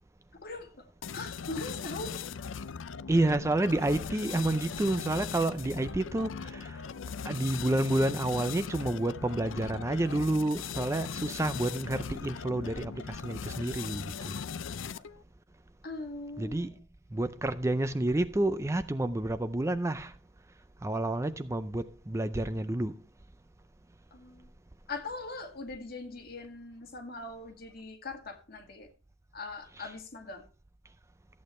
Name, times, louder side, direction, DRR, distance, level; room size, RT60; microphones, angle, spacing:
sound 1, 1.0-15.2, left 6 dB, 75° left, 0.5 m, -39 dB
voice 1, 1.1-2.2 15.8-16.7 24.1-24.5 24.9-28.9 29.3-30.5, left 3 dB, 50° left, 2.0 m, -41 dB
voice 2, 3.1-6.9 7.2-14.4 16.4-16.8 17.1-20.2 20.8-23.0 29.8-29.9, right 1 dB, 15° right, 0.4 m, -29 dB
14.0 x 8.5 x 3.2 m
head